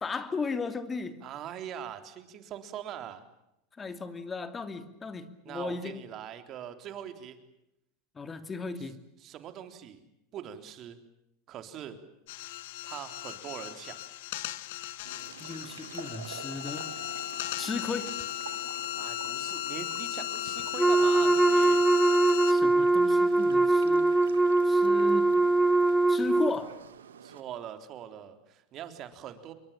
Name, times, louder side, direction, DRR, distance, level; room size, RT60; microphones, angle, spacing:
voice 1, 0.0-1.2 3.8-6.0 8.1-9.0 15.4-16.9 17.6-18.2 22.5-24.1 24.6-25.3 26.1-26.7, left 4 dB, 20° left, 10 dB, 2.7 m, -35 dB
voice 2, 1.2-3.2 5.5-7.4 9.2-10.0 10.3-11.0 11.5-12.0 12.8-14.0 19.0-21.9 27.2-29.5, right 10 dB, 45° right, 9 dB, 3.7 m, -42 dB
sound 1, 12.3-22.5, left 15 dB, 70° left, 1.4 m, -36 dB
sound 2, 15.0-27.4, right 8 dB, 90° right, 2.1 m, -47 dB
Wind instrument woodwind instrument, 20.8-26.6, right 2 dB, 5° right, 1.2 m, -22 dB
28.0 x 23.5 x 7.5 m, 0.84 s
hypercardioid pair, 95°, 0 cm